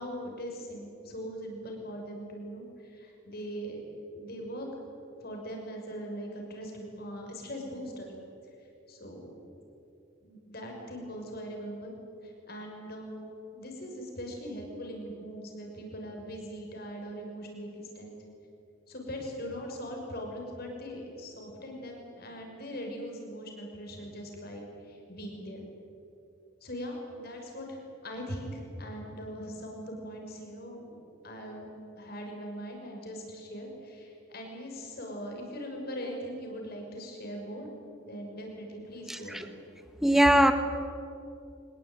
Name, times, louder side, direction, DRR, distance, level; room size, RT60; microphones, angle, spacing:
voice 1, 0.0-3.8 4.1-4.7 5.2-8.1 8.9-9.3 10.2-11.9 12.2-13.2 13.5-18.2 18.9-25.7 26.6-31.0 31.2-31.7 32.0-37.7 38.0-39.5, equal, 50° left, 1 dB, 6.0 m, -40 dB
voice 2, 39.1-39.4 40.0-40.5, right 1 dB, ahead, 8 dB, 1.4 m, -21 dB
24.5 x 21.0 x 9.3 m, 2.8 s
head